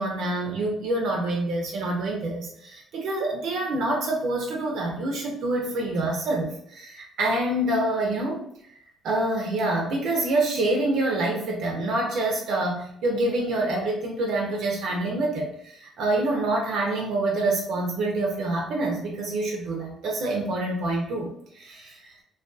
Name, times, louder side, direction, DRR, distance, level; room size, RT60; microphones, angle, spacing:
voice 1, 0.0-8.4 8.7-8.8 9.0-22.1, right 2 dB, 75° right, 0 dB, 0.5 m, -26 dB
2.2 x 2.2 x 2.6 m, 0.67 s
cardioid pair, 105°, 0 cm